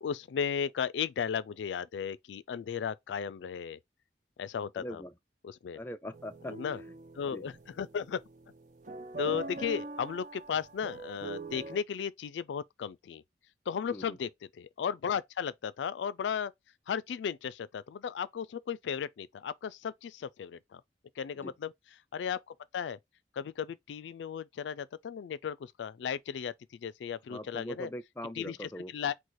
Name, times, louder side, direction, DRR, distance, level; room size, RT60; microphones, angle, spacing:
voice 1, 0.0-3.8 4.4-5.0 5.4-5.8 6.5-6.8 7.1-8.2 9.2-13.2 13.7-16.5 16.9-20.8 21.2-21.7 22.1-23.0 23.3-27.9 28.4-29.1, left 7 dB, 85° left, 0.3 m, -35 dB
voice 2, 4.8-5.1 5.7-6.6 7.3-7.4 13.9-14.2 21.4-21.5 27.3-28.9, equal, 10° left, 0.4 m, -41 dB
sound 1, 6.1-11.8, right 3 dB, 45° right, 0.7 m, -43 dB
4.7 x 2.1 x 4.1 m
head